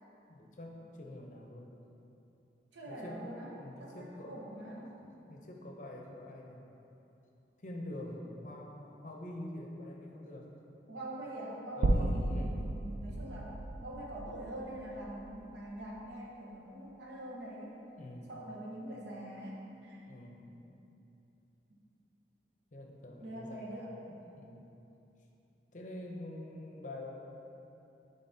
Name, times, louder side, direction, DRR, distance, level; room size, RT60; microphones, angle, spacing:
voice 1, 0.3-1.8 2.9-6.6 7.6-10.5 11.7-12.8 18.0-18.4 20.0-20.7 22.7-24.8 25.7-27.2, left 1 dB, 45° left, 0 dB, 0.6 m, -46 dB
voice 2, 2.7-3.5 3.8-5.0 10.9-17.7 18.3-20.0 23.2-24.0, right 1 dB, 85° right, -4 dB, 1.0 m, -44 dB
sound 1, 11.8-16.1, right 1 dB, 65° right, 0.3 m, -34 dB
9.1 x 3.8 x 2.7 m, 2.9 s
head